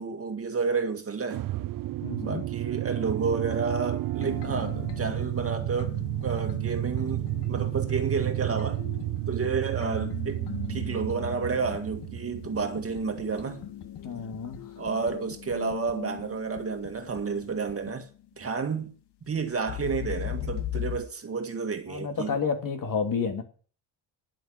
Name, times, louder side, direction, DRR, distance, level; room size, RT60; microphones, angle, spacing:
voice 1, 0.0-1.4 2.2-6.0 6.2-8.8 9.3-13.7 14.8-18.1 18.4-18.9 19.3-22.4, right 5 dB, 30° right, 2.0 m, -31 dB
sound 1, 1.3-13.5, right 16 dB, 50° right, 0.5 m, -32 dB
voice 2, 2.0-2.4 14.0-14.6 21.9-23.4, left 5 dB, 45° left, 2.7 m, -30 dB
sound 2, 4.2-17.9 19.7-21.0, left 11 dB, 65° left, 1.8 m, -39 dB
10.5 x 8.1 x 7.8 m
cardioid pair, 110°, 44 cm